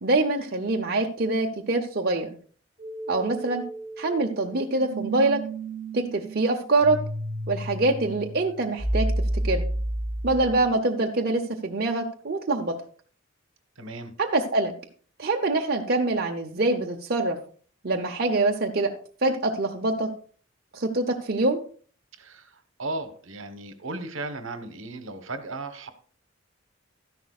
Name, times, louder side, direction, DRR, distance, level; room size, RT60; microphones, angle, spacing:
voice 1, 0.0-2.3 3.1-3.6 4.0-5.4 5.9-7.0 7.5-9.6 10.2-12.8 14.2-14.7 15.2-17.4 17.8-18.9 19.2-20.1 20.7-21.6, right 2 dB, 50° right, 0.7 m, -25 dB
sound 1, 2.8-10.7, right 1 dB, 5° right, 3.2 m, -31 dB
voice 2, 13.8-14.1 22.2-25.9, right 2 dB, 70° right, 1.1 m, -36 dB
12.5 x 10.5 x 2.4 m
head